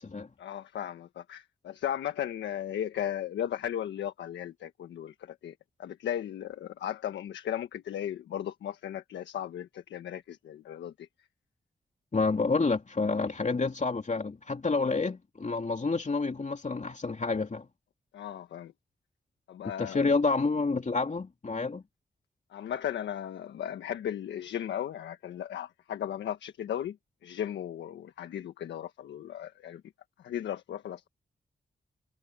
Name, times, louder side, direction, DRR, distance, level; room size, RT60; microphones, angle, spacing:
voice 1, 0.4-11.1 18.1-18.7 19.5-20.0 22.5-27.0 27.2-29.8 30.2-31.1, left 10 dB, 85° left, 1.4 m, -36 dB
voice 2, 12.1-17.7 19.8-21.8, left 3 dB, 40° left, 2.8 m, -29 dB
supercardioid pair, 40°, 18 cm